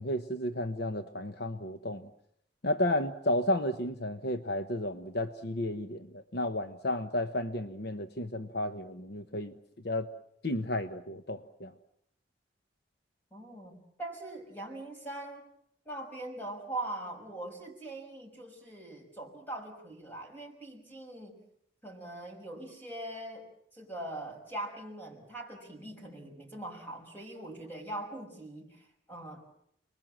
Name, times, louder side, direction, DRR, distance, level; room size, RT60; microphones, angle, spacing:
voice 1, 0.0-2.1 2.6-9.5 9.8-10.1 10.4-11.7, left 1 dB, 55° left, 9 dB, 1.0 m, -32 dB
voice 2, 13.3-15.5 15.9-21.4 21.8-29.4, right 1 dB, 10° left, 2 dB, 5.6 m, -42 dB
30.0 x 21.0 x 7.5 m, 0.73 s
head